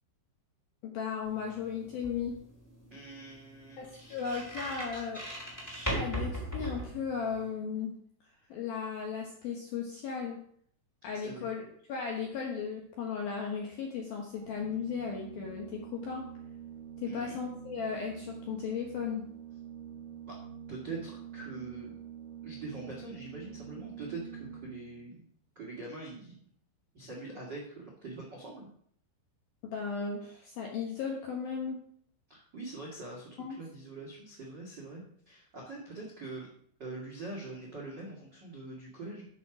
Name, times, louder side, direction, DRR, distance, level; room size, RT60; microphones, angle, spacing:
voice 1, 0.8-2.4 3.8-5.2 5.9-7.9 8.5-10.4 11.0-11.6 11.9-16.3 17.0-19.3 29.6-31.8 33.4-33.6, left 6 dB, 70° left, 0 dB, 2.3 m, -36 dB
sound 1, 1.2-7.5, equal, 5° left, 2.8 m, -39 dB
voice 2, 2.9-4.2 11.2-11.5 17.0-17.4 20.2-20.4 20.7-21.9 22.4-25.2 25.5-26.4 26.9-28.7 32.3-36.5 36.8-39.3, right 3 dB, 55° right, -2 dB, 1.2 m, -43 dB
Organ, 14.4-25.1, right 9 dB, 90° right, 3.5 m, -46 dB
12.5 x 6.2 x 5.0 m, 0.63 s
omnidirectional pair, 5.9 m